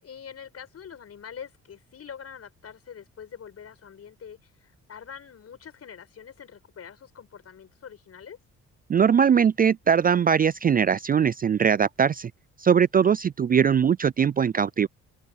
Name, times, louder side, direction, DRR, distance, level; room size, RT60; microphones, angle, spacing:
voice 1, 0.0-8.4, left 7 dB, 55° left, 5.8 m, -44 dB
voice 2, 8.9-12.3 12.6-14.9, right 7 dB, 30° right, 0.4 m, -21 dB
cardioid pair, 90°, 30 cm